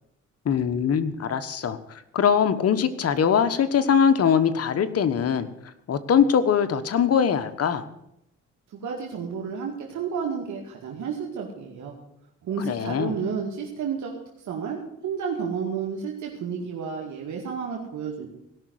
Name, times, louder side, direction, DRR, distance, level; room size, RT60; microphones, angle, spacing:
voice 1, 0.4-5.5 5.9-7.9 12.6-13.1, left 7 dB, 50° left, 11 dB, 1.3 m, -22 dB
voice 2, 8.7-11.9 12.4-14.1 14.4-18.3, right 6 dB, 70° right, 0 dB, 2.2 m, -31 dB
17.0 x 6.0 x 9.4 m, 0.80 s
cardioid pair, 90°, 30 cm